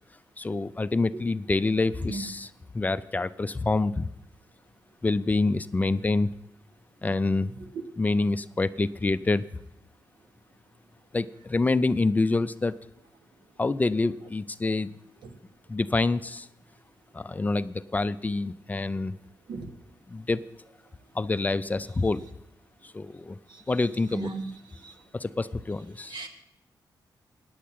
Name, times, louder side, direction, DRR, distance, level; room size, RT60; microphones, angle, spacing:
voice 1, 0.4-4.1 5.0-6.3 7.0-7.5 8.0-9.4 11.1-12.8 13.6-14.9 15.7-16.5 17.1-19.2 20.1-20.4 21.1-22.2 22.8-23.4 23.7-24.3 25.1-26.2, left 3 dB, 20° left, 0.4 m, -27 dB
voice 2, 24.1-24.5 24.8-24.9 26.1-26.3, right 3 dB, 85° right, 1.5 m, -35 dB
9.4 x 8.5 x 7.3 m
wide cardioid pair, 115°, 8 cm